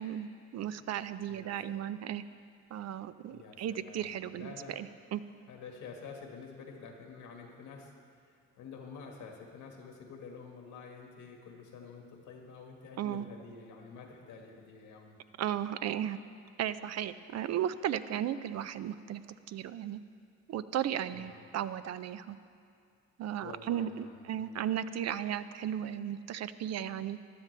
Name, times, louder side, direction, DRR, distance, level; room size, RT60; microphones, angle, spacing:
voice 1, 0.0-2.2 2.7-5.2 13.0-13.3 15.4-16.2 16.6-19.2 19.5-20.0 20.5-22.4 23.2-27.2, right 10 dB, 60° right, 13 dB, 0.5 m, -35 dB
voice 2, 1.3-1.8 3.3-4.1 4.4-4.8 5.5-7.9 8.6-15.2 21.1-21.5 23.4-24.6, left 5 dB, 85° left, 2 dB, 1.7 m, -49 dB
15.0 x 11.5 x 3.3 m, 2.4 s
cardioid pair, 90°, 30 cm